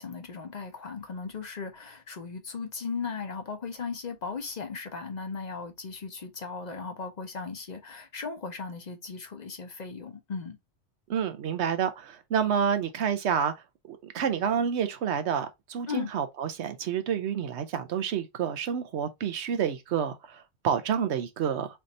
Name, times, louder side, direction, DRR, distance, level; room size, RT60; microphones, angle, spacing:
voice 1, 0.0-10.6 15.9-16.1, left 5 dB, 45° left, 0.7 m, -37 dB
voice 2, 11.1-13.5 13.9-21.7, right 8 dB, 70° right, 0.9 m, -29 dB
3.4 x 2.5 x 4.1 m
omnidirectional pair, 1.2 m